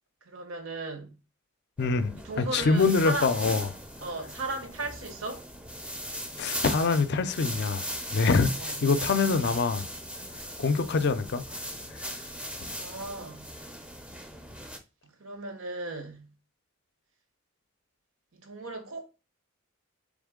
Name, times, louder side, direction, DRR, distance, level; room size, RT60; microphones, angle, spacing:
voice 1, 0.3-1.1 2.1-3.3 4.0-5.4 8.6-8.8 12.8-13.4 15.0-16.3 18.3-19.1, right 2 dB, 70° right, 1.0 m, -36 dB
voice 2, 1.8-3.7 6.4-7.8 8.1-9.9 10.6-11.4 12.0-12.1, left 4 dB, 55° left, 0.4 m, -25 dB
sound 1, 1.8-14.8, equal, 5° right, 0.5 m, -38 dB
3.7 x 3.5 x 3.6 m
head